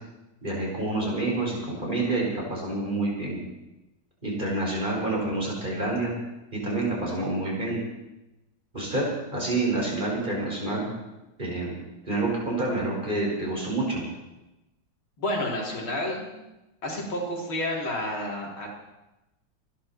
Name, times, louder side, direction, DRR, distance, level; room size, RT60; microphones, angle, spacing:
voice 1, 0.4-3.4 4.2-6.1 6.6-7.8 8.7-9.0 9.3-10.9 11.4-11.8 12.1-14.0, right 2 dB, 25° right, -3 dB, 5.6 m, -28 dB
voice 2, 15.2-16.3 16.8-18.7, left 1 dB, 85° left, -2 dB, 4.5 m, -30 dB
26.5 x 11.5 x 4.5 m, 0.98 s
omnidirectional pair, 2.2 m